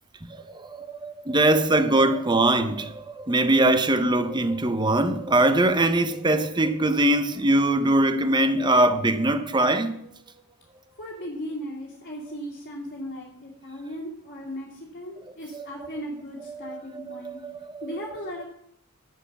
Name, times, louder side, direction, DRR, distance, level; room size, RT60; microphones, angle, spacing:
voice 1, 0.3-10.0 15.5-15.7 16.5-17.9, right 1 dB, 20° right, 0.7 m, -22 dB
voice 2, 11.0-17.4 17.8-18.4, equal, 45° left, 2.2 m, -37 dB
11.0 x 7.2 x 5.9 m
head